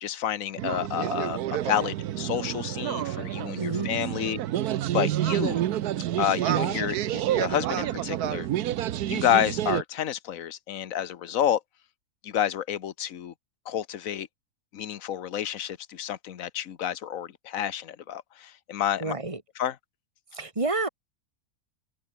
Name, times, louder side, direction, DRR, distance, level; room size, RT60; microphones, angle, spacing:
voice 1, 0.0-4.4 4.9-5.6 6.2-8.5 9.1-11.6 12.2-13.3 13.7-14.3 14.7-19.1 19.6-19.8, left 10 dB, 65° left, 1.4 m, -29 dB
sound 1, 0.6-9.8, right 12 dB, 85° right, 1.3 m, -29 dB
voice 2, 3.6-3.9 19.0-19.4 20.3-20.9, right 2 dB, 20° right, 3.0 m, -29 dB
open air
omnidirectional pair, 1.6 m